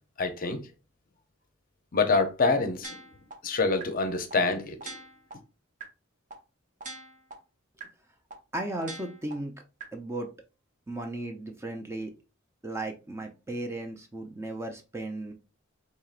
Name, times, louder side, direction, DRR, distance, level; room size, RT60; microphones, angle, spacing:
voice 1, 0.2-0.6 1.9-3.0 3.4-4.9, left 3 dB, 45° left, 0.6 m, -26 dB
sound 1, 2.8-3.3 3.8-3.9 4.3-4.4 4.8-5.3 5.8-5.9 6.3-6.4 6.8-7.3 7.8-7.9 8.3-8.4 8.8-9.3 9.8-9.9, right 3 dB, 40° right, 0.8 m, -41 dB
voice 2, 8.5-9.6 9.9-10.3 10.9-12.1 12.6-15.3, right 2 dB, 15° right, 0.5 m, -35 dB
4.5 x 2.8 x 2.4 m
head